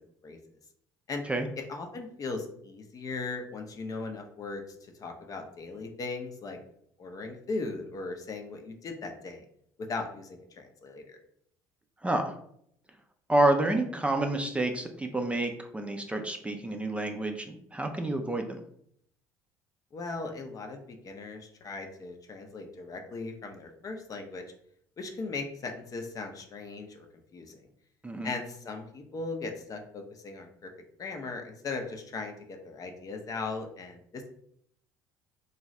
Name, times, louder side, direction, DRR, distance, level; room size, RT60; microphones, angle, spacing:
voice 1, 1.6-6.6 7.0-9.4 9.8-11.2 19.9-24.4 25.0-27.1 27.3-27.6 28.2-30.7 31.0-34.3, left 3 dB, 40° left, 4 dB, 0.6 m, -38 dB
voice 2, 12.0-12.3 13.3-18.6 28.0-28.3, right 1 dB, 15° right, 4 dB, 0.4 m, -29 dB
2.6 x 2.3 x 3.1 m, 0.68 s
hypercardioid pair, 65°, 9 cm